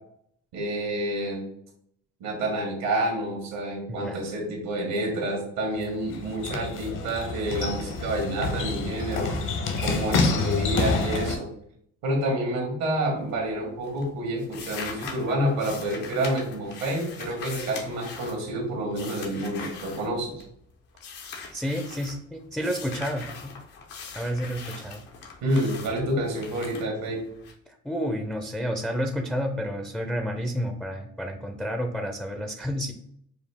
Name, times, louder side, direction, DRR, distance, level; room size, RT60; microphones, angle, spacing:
voice 1, 0.5-1.4 2.2-9.3 9.8-11.5 12.0-20.4 25.4-27.2, right 1 dB, 85° right, -1 dB, 1.5 m, -28 dB
voice 2, 3.9-4.2 10.2-10.4 21.5-23.5 24.1-25.0 27.8-32.9, equal, 5° left, 4 dB, 0.4 m, -30 dB
sound 1, 5.7-11.3, left 3 dB, 65° left, 1.0 m, -28 dB
sound 2, 13.2-13.6 13.8-20.6 21.0-22.2 22.6-27.5, left 5 dB, 85° left, 1.0 m, -41 dB
5.0 x 2.3 x 3.4 m, 0.70 s
cardioid pair, 90°, 34 cm